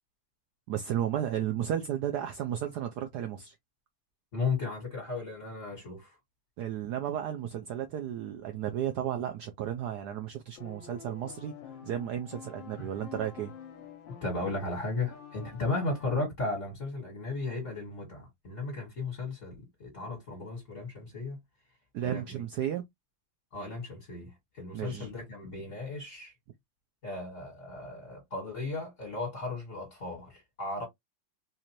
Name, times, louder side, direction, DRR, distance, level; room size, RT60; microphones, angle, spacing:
voice 1, 0.7-3.5 6.6-11.5 11.9-13.5 21.9-22.8 24.7-25.1, right 10 dB, 70° right, 1.1 m, -33 dB
voice 2, 4.3-6.1 12.8-12.9 14.2-21.4 22.0-22.4 23.5-26.3 27.0-30.9, left 3 dB, 40° left, 1.8 m, -35 dB
sound 1, 10.6-16.2, left 7 dB, 80° left, 1.4 m, -48 dB
4.2 x 2.5 x 2.9 m
omnidirectional pair, 2.1 m